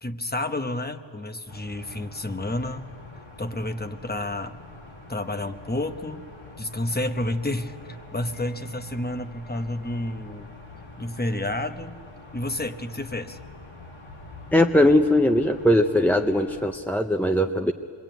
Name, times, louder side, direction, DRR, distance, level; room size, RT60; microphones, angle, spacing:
voice 1, 0.0-2.9 3.4-4.5 5.1-6.2 6.6-10.5 11.0-12.0 12.3-13.4, left 1 dB, 20° left, 7 dB, 1.0 m, -30 dB
sound 1, 1.5-16.7, left 2 dB, 75° left, 4.4 m, -45 dB
voice 2, 14.5-17.7, left 1 dB, 5° left, 5 dB, 0.5 m, -20 dB
26.5 x 22.0 x 9.2 m, 2.6 s
wide cardioid pair, 150°, 48 cm